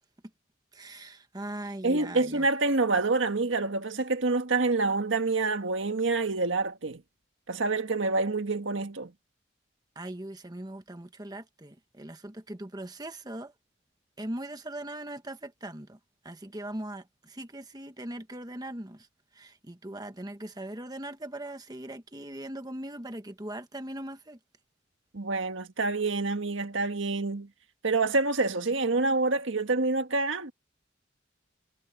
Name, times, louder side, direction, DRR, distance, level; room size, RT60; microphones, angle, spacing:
voice 1, 0.7-2.5 9.9-13.5 14.2-16.0 16.2-19.1 19.3-24.4, right 1 dB, 20° right, 1.3 m, -40 dB
voice 2, 1.8-7.0 7.5-9.1 25.1-27.5 27.8-30.5, right 3 dB, 80° right, 1.6 m, -27 dB
head